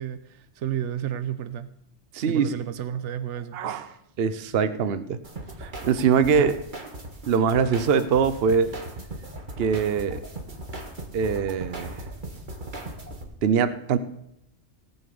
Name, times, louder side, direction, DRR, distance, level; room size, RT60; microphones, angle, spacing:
voice 1, 0.0-1.7 2.3-3.6 6.3-6.5, right 10 dB, 85° right, 13 dB, 1.1 m, -31 dB
voice 2, 2.1-2.6 3.5-3.9 4.2-5.2 5.6-6.5 7.3-8.7 9.6-10.2 11.1-12.0 13.4-14.0, right 6 dB, 60° right, 13 dB, 0.9 m, -23 dB
sound 1, 5.2-13.2, right 1 dB, 45° right, 1.8 m, -38 dB
18.5 x 6.8 x 6.9 m, 0.80 s
omnidirectional pair, 1.2 m